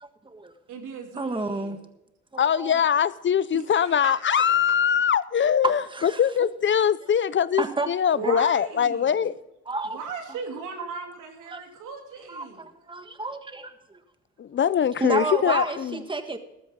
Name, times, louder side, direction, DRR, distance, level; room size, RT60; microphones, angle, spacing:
voice 1, 0.0-0.5 1.1-1.8 2.3-2.7 5.9-6.2 7.6-7.9 8.2-8.3 9.7-10.0 11.5-11.6 12.3-14.0 15.0-16.4, right 2 dB, 15° right, 1.6 m, -31 dB
voice 2, 0.7-1.8 3.5-4.4 7.0-7.1 8.1-9.3 9.8-12.7, right 5 dB, 85° right, 3.1 m, -37 dB
voice 3, 2.4-9.3 14.4-16.0, left 8 dB, 40° left, 0.5 m, -22 dB
14.0 x 13.0 x 3.7 m
cardioid pair, 90°, 30 cm